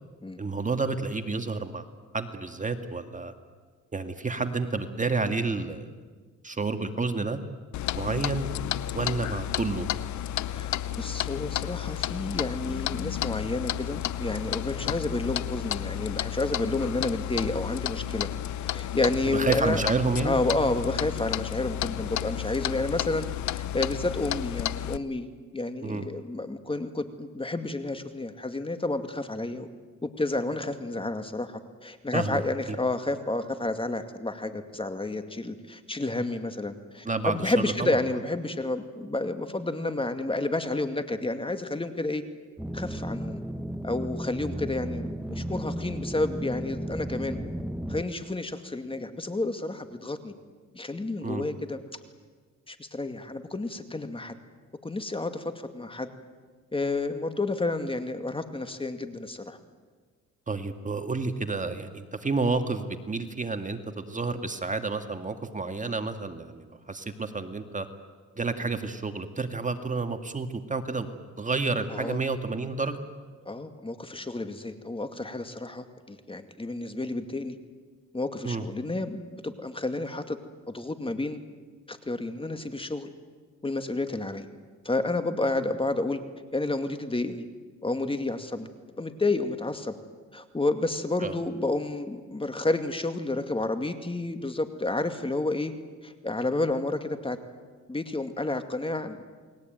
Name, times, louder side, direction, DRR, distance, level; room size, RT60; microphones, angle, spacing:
voice 1, 0.4-1.8 2.1-3.3 3.9-5.9 6.4-7.4 7.9-8.5 8.8-9.9 19.3-20.4 25.8-26.1 32.1-32.4 32.7-32.8 37.1-37.5 37.8-38.0 51.2-51.4 60.5-67.9 68.4-71.1 71.4-73.0 78.4-78.7 91.2-91.4, right 3 dB, 25° right, 7 dB, 1.9 m, -30 dB
Clock, 7.7-25.0, left 12 dB, 70° left, 0.9 m, -32 dB
voice 2, 10.5-18.3 18.7-19.8 20.2-23.3 23.5-25.3 25.5-29.7 30.0-42.2 42.7-43.4 43.8-47.4 47.9-50.3 50.7-51.8 52.7-54.3 54.8-56.1 56.7-59.6 71.9-72.2 73.5-77.6 78.1-80.4 80.7-81.4 81.9-83.1 83.6-84.5 84.8-86.2 86.5-87.5 87.8-88.7 89.0-90.0 90.3-95.7 96.0-97.4 97.9-99.2, left 2 dB, 20° left, 8 dB, 2.3 m, -30 dB
sound 1, 42.6-48.0, equal, 5° right, 1.1 m, -34 dB
30.0 x 21.0 x 9.2 m, 1.5 s
cardioid pair, 90°, 30 cm